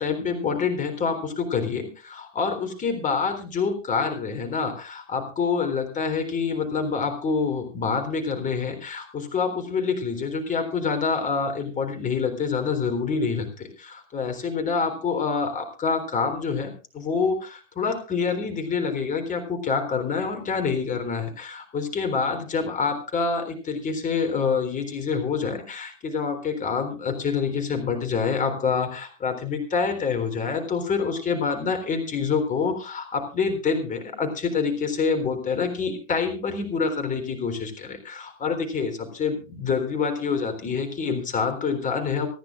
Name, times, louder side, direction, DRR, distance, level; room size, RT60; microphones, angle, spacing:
voice 1, 0.0-42.3, left 5 dB, 20° left, 6 dB, 3.8 m, -26 dB
27.0 x 10.5 x 2.5 m, 0.33 s
hypercardioid pair, 120°, 37 cm